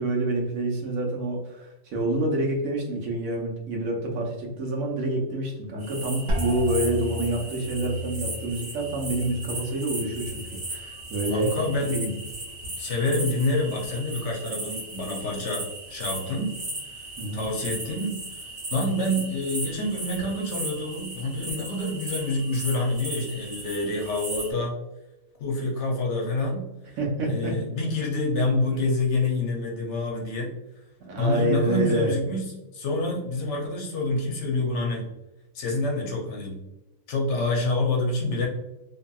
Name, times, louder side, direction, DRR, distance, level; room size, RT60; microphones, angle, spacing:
voice 1, 0.0-11.5 11.9-12.1 17.2-17.5 27.0-27.5 28.8-28.9 31.1-32.1, right 2 dB, 85° right, -1 dB, 1.1 m, -27 dB
sound 1, 5.8-24.5, right 2 dB, 40° right, 0.7 m, -37 dB
sound 2, 6.3-11.9 12.2-12.9 13.5-13.9, left 1 dB, 65° right, 0.9 m, -36 dB
voice 2, 11.3-12.0 12.8-16.5 17.0-17.1 17.3-24.8 25.4-26.6 27.2-30.5 31.2-35.0 35.5-36.6 37.1-38.5, left 2 dB, 65° left, 0 dB, 0.8 m, -27 dB
2.7 x 2.7 x 2.2 m, 0.98 s
omnidirectional pair, 1.4 m